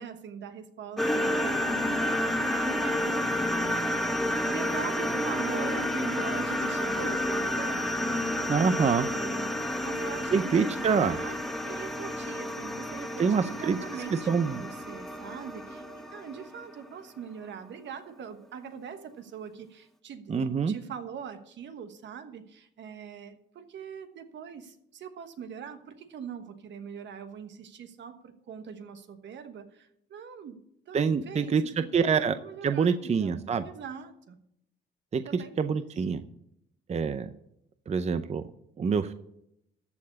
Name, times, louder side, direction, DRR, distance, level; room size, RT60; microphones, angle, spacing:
voice 1, 0.0-3.3 4.0-34.4 35.3-36.0, right 7 dB, 65° right, 1.3 m, -42 dB
sound 1, 1.0-16.9, left 1 dB, ahead, 1.2 m, -30 dB
voice 2, 8.5-9.1 10.3-11.2 13.2-13.8 14.3-14.6 20.3-20.7 30.9-31.6 31.9-32.3 32.6-33.7 35.1-36.2 36.9-37.3 37.9-38.4 38.8-39.1, right 6 dB, 35° right, 0.6 m, -26 dB
14.0 x 4.7 x 8.4 m
cardioid pair, 90°, 20 cm